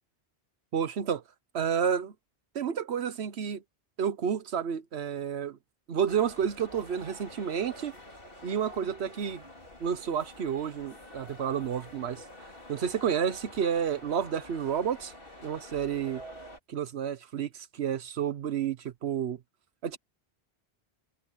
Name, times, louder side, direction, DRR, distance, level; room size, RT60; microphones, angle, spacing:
voice 1, 0.7-1.2 1.5-2.1 2.5-3.6 4.0-5.6 5.9-7.9 8.4-9.4 9.8-12.2 12.7-15.1 15.4-16.2 16.7-19.4 19.8-20.0, right 8 dB, 85° right, 1.2 m, -30 dB
sound 1, 6.1-16.6, left 1 dB, 60° left, 4.0 m, -48 dB
omnidirectional pair, 1.1 m